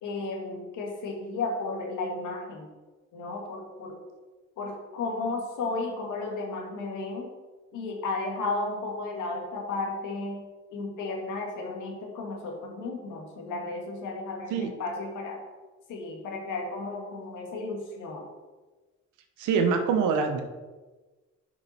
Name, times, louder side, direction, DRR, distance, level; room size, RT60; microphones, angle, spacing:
voice 1, 0.0-2.7 3.1-4.0 4.6-7.3 7.7-10.4 10.7-15.4 15.9-18.2, left 3 dB, 85° left, 1 dB, 1.9 m, -33 dB
voice 2, 19.4-20.4, right 5 dB, 85° right, 6 dB, 0.9 m, -24 dB
7.5 x 5.9 x 4.3 m, 1.3 s
cardioid pair, 90°, 30 cm